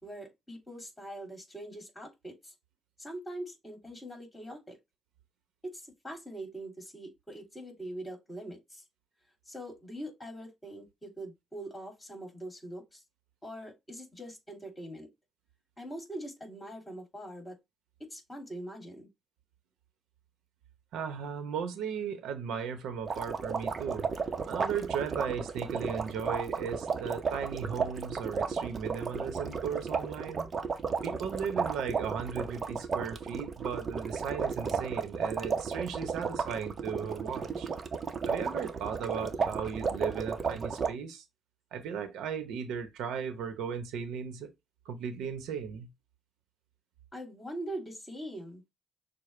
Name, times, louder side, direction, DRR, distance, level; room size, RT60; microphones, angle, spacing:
voice 1, 0.0-2.5 3.0-4.8 5.6-8.8 9.4-13.0 13.4-15.1 15.8-17.6 18.1-19.1 47.1-48.6, right 1 dB, 15° left, 2.8 m, -43 dB
voice 2, 20.9-24.1 24.4-30.5 31.0-37.7 38.3-41.2 41.7-44.5 44.8-45.9, right 7 dB, 85° right, 0.9 m, -36 dB
sound 1, 23.1-40.9, right 5 dB, 40° right, 0.8 m, -33 dB
6.5 x 2.2 x 3.2 m
cardioid pair, 90°, 0 cm